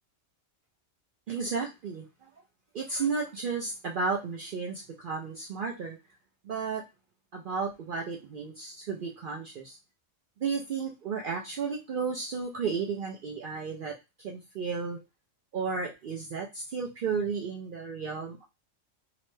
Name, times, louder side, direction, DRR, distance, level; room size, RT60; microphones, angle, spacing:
voice 1, 1.3-2.0 2.7-6.0 6.4-6.8 7.3-9.8 10.4-15.0 15.5-18.4, right 5 dB, 60° right, -1 dB, 0.5 m, -33 dB
2.9 x 2.1 x 3.1 m, 0.25 s
omnidirectional pair, 1.3 m